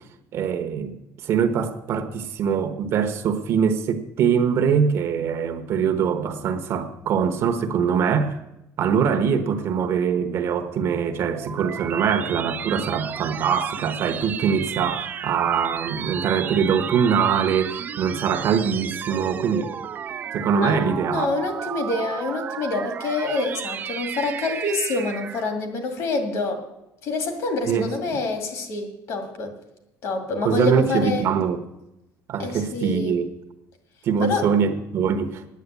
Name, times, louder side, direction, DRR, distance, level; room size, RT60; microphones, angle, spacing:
voice 1, 0.3-8.4 8.8-19.7 20.3-21.3 27.7-28.2 30.4-31.6 32.3-33.3 34.0-35.4, right 7 dB, 50° right, 1.0 m, -23 dB
sound 1, 10.9-25.6, right 8 dB, 30° right, 0.4 m, -33 dB
voice 2, 20.6-26.6 27.0-29.5 30.0-31.3 32.4-33.2 34.2-34.5, left 3 dB, 55° left, 2.2 m, -27 dB
9.4 x 9.2 x 8.2 m
cardioid pair, 165°, 6 cm